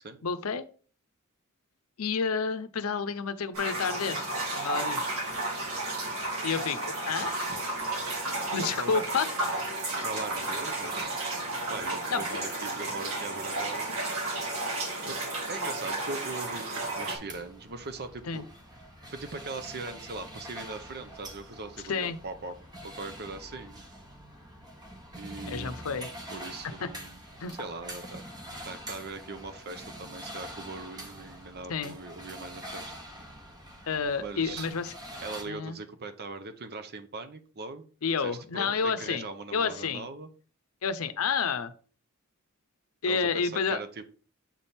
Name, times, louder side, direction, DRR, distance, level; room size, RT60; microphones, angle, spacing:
voice 1, 0.2-0.7 2.0-4.3 4.6-5.0 6.4-7.3 8.5-9.7 12.1-12.4 18.3-18.4 21.9-22.2 25.5-26.1 26.8-26.9 27.4-27.6 31.7-31.9 33.9-34.9 35.5-35.8 38.0-39.2 39.5-40.1 40.8-41.7 43.0-43.8, left 5 dB, 75° left, 12 dB, 0.6 m, -30 dB
sound 1, 3.5-17.2, right 2 dB, 70° right, 2.1 m, -32 dB
voice 2, 8.5-9.1 10.0-11.3 11.7-14.0 15.1-18.4 19.1-22.5 22.8-23.8 25.2-25.7 26.3-27.2 27.6-28.2 28.6-32.9 34.2-34.7 35.2-37.9 38.2-40.3 43.1-44.0, right 3 dB, 50° right, 9 dB, 0.7 m, -40 dB
sound 2, 17.1-35.4, right 1 dB, 20° right, 1.1 m, -45 dB
7.5 x 3.5 x 4.2 m, 0.40 s
head